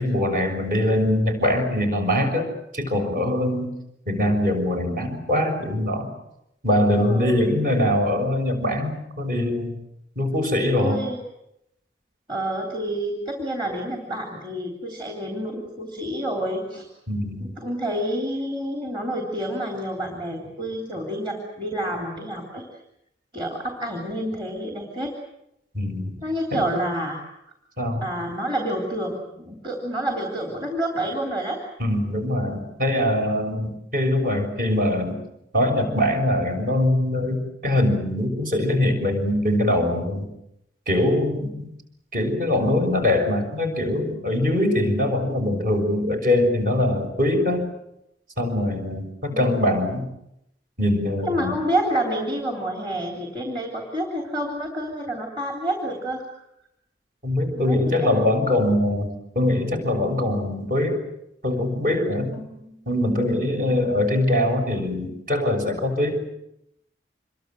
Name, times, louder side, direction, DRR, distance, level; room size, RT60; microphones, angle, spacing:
voice 1, 0.0-2.4 2.7-3.7 4.1-6.1 6.6-9.8 10.2-11.0 17.1-17.5 25.7-26.2 26.5-26.7 27.8-28.1 31.8-35.2 35.5-40.3 40.9-41.7 42.1-47.7 48.4-50.1 50.8-51.6 57.2-61.0 61.4-62.4 62.9-66.2, left 1 dB, 50° right, 5 dB, 6.5 m, -23 dB
voice 2, 7.0-7.4 10.8-11.2 12.3-16.9 17.4-22.6 23.3-25.2 26.2-27.2 28.0-31.6 49.3-49.8 51.2-56.2 57.5-58.2 62.3-62.7, right 1 dB, 25° right, 1 dB, 3.6 m, -28 dB
27.0 x 23.0 x 7.8 m, 0.81 s
head